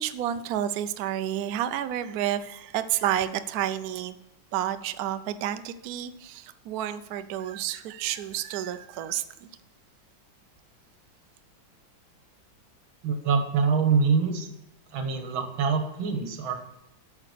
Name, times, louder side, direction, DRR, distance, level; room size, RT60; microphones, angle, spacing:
voice 1, 0.0-4.2 4.5-9.2, right 11 dB, 70° right, 11 dB, 0.9 m, -30 dB
voice 2, 13.0-14.5 14.9-16.6, right 5 dB, 90° right, 6 dB, 2.0 m, -25 dB
8.7 x 5.9 x 6.7 m, 0.91 s
omnidirectional pair, 2.1 m